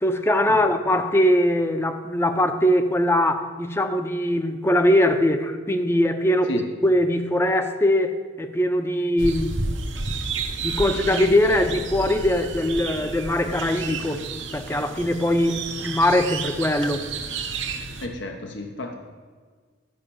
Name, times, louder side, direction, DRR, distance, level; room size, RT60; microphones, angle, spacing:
voice 1, 0.0-9.5 10.6-14.2 14.5-17.1, left 1 dB, 15° left, 0.6 m, -21 dB
sound 1, 9.2-18.1, right 4 dB, 90° right, 1.1 m, -31 dB
voice 2, 18.0-19.0, left 2 dB, 75° left, 0.9 m, -32 dB
12.0 x 5.5 x 7.0 m
head